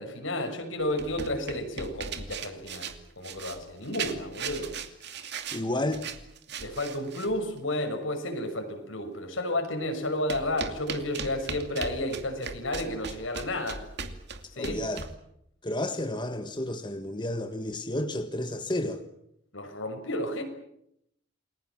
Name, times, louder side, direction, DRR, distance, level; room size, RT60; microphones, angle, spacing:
voice 1, 0.0-4.8 6.6-13.8 14.5-15.0 19.5-20.4, left 1 dB, 85° left, 5 dB, 6.2 m, -32 dB
sound 1, 0.8-7.4 10.3-15.2, right 5 dB, 60° right, 2.5 m, -38 dB
voice 2, 5.5-6.0 14.6-15.0 15.6-19.0, left 1 dB, 25° left, 7 dB, 1.6 m, -31 dB
29.0 x 21.5 x 7.4 m, 0.76 s
head